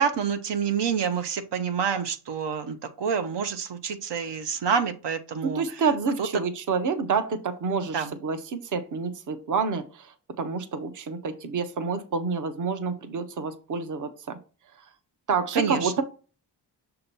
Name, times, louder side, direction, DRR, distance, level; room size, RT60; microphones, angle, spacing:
voice 1, 0.0-5.6 7.9-8.1 15.6-16.0, right 6 dB, 80° right, 9 dB, 0.8 m, -27 dB
voice 2, 5.4-14.4 15.3-16.0, right 5 dB, 45° right, 9 dB, 0.7 m, -28 dB
6.7 x 2.9 x 5.3 m, 0.36 s
wide cardioid pair, 150°, 42 cm